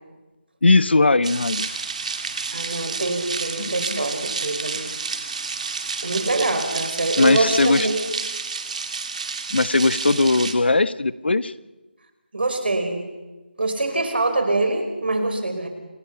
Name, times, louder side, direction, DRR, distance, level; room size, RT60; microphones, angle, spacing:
voice 1, 0.6-1.7 3.6-4.0 7.2-7.9 9.5-11.5, left 3 dB, 70° left, 16 dB, 1.1 m, -19 dB
sound 1, 1.2-10.5, right 4 dB, 40° right, 2.4 m, -30 dB
voice 2, 2.5-4.9 6.0-8.0 12.3-13.1 13.6-15.7, right 2 dB, 65° right, 6 dB, 5.3 m, -24 dB
28.0 x 20.5 x 5.8 m, 1.2 s
figure-of-eight pair, 165°, 6 cm